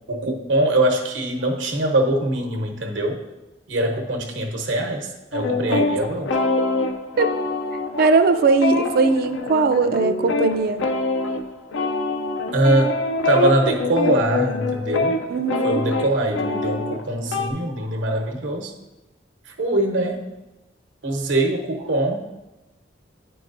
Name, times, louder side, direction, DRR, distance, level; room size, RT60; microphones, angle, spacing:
voice 1, 0.1-3.2 3.7-6.4 12.5-13.0 13.2-15.2 15.6-18.7 19.4-20.2 21.0-22.2, right 1 dB, 80° right, 1 dB, 1.0 m, -22 dB
sound 1, 5.3-17.5, left 3 dB, 80° left, 0.5 m, -25 dB
voice 2, 8.0-10.9 15.3-15.8, right 3 dB, 55° right, 8 dB, 0.4 m, -19 dB
9.1 x 4.7 x 2.6 m, 1.0 s
head